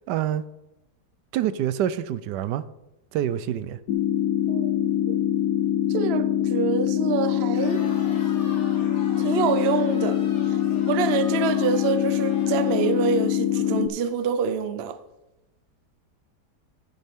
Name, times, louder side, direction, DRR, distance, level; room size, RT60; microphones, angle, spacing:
voice 1, 0.1-0.4 1.3-2.6 3.1-3.8, right 11 dB, 80° right, 1.2 m, -26 dB
sound 1, 3.9-13.9, left 11 dB, 75° left, 1.2 m, -24 dB
voice 2, 4.5-5.2 5.9-7.8 9.2-10.2 10.5-10.6 10.9-15.0, right 7 dB, 60° right, 0.7 m, -26 dB
Crowd, 7.5-13.7, left 2 dB, 45° left, 1.6 m, -43 dB
10.5 x 9.8 x 3.6 m
omnidirectional pair, 1.8 m